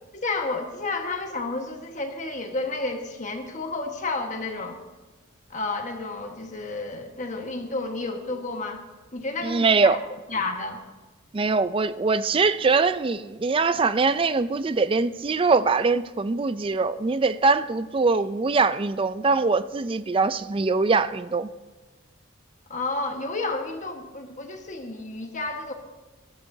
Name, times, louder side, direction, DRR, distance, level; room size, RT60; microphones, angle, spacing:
voice 1, 0.1-4.8 5.5-8.8 9.1-10.0 10.3-10.8 18.1-18.2 22.7-25.7, left 3 dB, 40° left, 1.4 m, -31 dB
voice 2, 9.4-10.0 11.3-21.5, right 4 dB, 25° right, 0.4 m, -22 dB
19.5 x 13.5 x 2.7 m
head